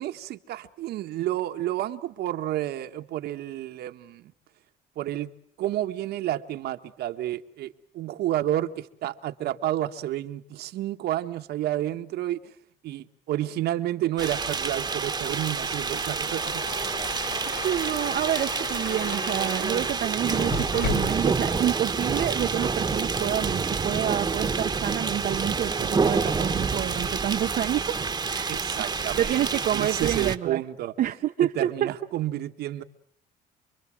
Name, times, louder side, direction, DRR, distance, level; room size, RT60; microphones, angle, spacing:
voice 1, 0.0-4.3 5.0-5.3 5.6-12.4 12.8-16.6 28.5-30.9 31.5-32.8, right 13 dB, 75° right, 1.5 m, -30 dB
sound 1, 14.2-30.4, right 4 dB, 25° right, 1.4 m, -28 dB
sound 2, 16.1-21.3, left 5 dB, 85° left, 3.5 m, -36 dB
voice 2, 17.6-27.8 28.3-28.6 29.2-30.6 31.0-31.9, right 11 dB, 60° right, 1.0 m, -28 dB
28.5 x 22.5 x 7.6 m
cardioid pair, 110°, 17 cm